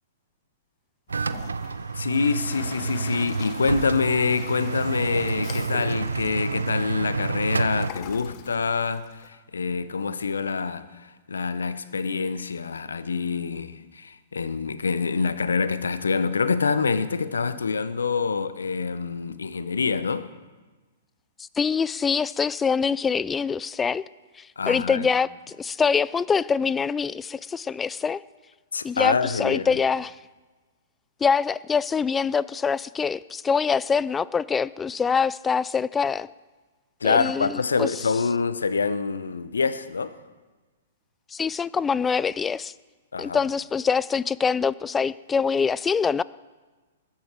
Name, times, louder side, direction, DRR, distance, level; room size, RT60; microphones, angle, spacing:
Toilet flush, 1.1-9.3, left 11 dB, 40° left, 0.9 m, -43 dB
sound 1, 1.1-7.9, right 4 dB, 80° right, 0.6 m, -29 dB
voice 1, 1.9-20.3 24.6-25.1 28.7-29.8 37.0-40.1 43.1-43.4, left 5 dB, 75° left, 0.9 m, -26 dB
voice 2, 21.6-24.0 24.4-28.2 28.8-30.1 31.2-36.3 37.0-37.9 41.3-42.7 43.2-46.2, left 6 dB, 15° left, 0.3 m, -24 dB
21.0 x 8.6 x 4.6 m
figure-of-eight pair, 110°, 0 cm